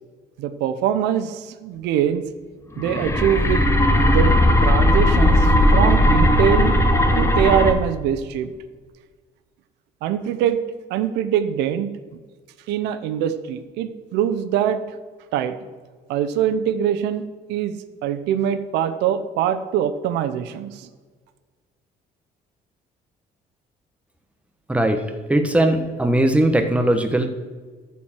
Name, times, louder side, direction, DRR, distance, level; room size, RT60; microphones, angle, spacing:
voice 1, 0.4-2.2 2.8-3.6 4.0-4.3 4.6-6.8 7.2-8.5 10.0-10.6 10.9-11.9 12.7-14.8 15.3-15.5 16.1-17.2 17.5-17.7 18.0-20.9, right 9 dB, 90° right, 10 dB, 0.8 m, -23 dB
sound 1, 2.8-7.7, left 1 dB, 15° left, 1.2 m, -17 dB
voice 2, 25.3-27.3, right 1 dB, 5° right, 5 dB, 1.3 m, -19 dB
14.0 x 4.6 x 7.4 m, 1.5 s
cardioid pair, 110°, 17 cm